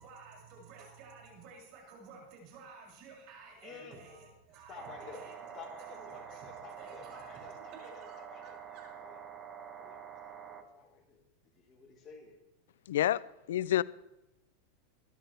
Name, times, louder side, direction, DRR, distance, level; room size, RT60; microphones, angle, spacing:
voice 1, 0.0-5.5 5.8-8.9, right 4 dB, 50° right, 7.1 m, -53 dB
voice 2, 3.6-4.1 4.7-5.2 5.5-8.6 9.0-9.3 9.7-12.4, left 5 dB, 30° left, 4.0 m, -52 dB
sound 1, 4.8-10.6, right 8 dB, 25° right, 1.4 m, -47 dB
voice 3, 12.9-13.8, left 12 dB, 90° left, 0.4 m, -29 dB
22.5 x 11.5 x 3.5 m
supercardioid pair, 140°, 0 cm